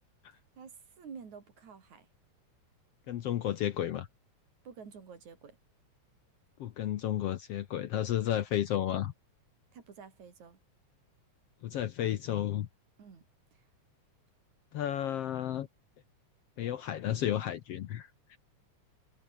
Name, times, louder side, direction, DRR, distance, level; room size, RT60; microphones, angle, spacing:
voice 1, 0.6-2.1 4.6-5.6 9.7-10.6 13.0-13.2 13.5-13.6, right 6 dB, 70° right, 4.8 m, -50 dB
voice 2, 3.1-4.1 6.6-9.1 11.6-12.7 14.7-15.7 16.6-18.4, left 11 dB, 65° left, 1.7 m, -32 dB
omnidirectional pair, 3.5 m